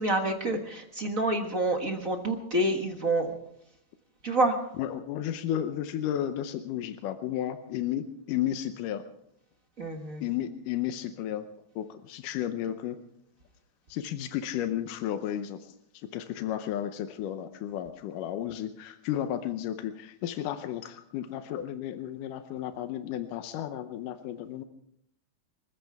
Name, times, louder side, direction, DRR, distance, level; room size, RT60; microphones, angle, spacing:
voice 1, 0.0-3.3 4.2-4.5 9.8-10.2, right 1 dB, 40° right, 3 dB, 1.3 m, -27 dB
voice 2, 4.8-9.0 10.2-11.5 11.8-13.0 13.9-15.7 16.1-24.6, left 11 dB, 90° left, 9 dB, 2.4 m, -33 dB
26.5 x 14.5 x 3.5 m, 0.73 s
omnidirectional pair, 3.6 m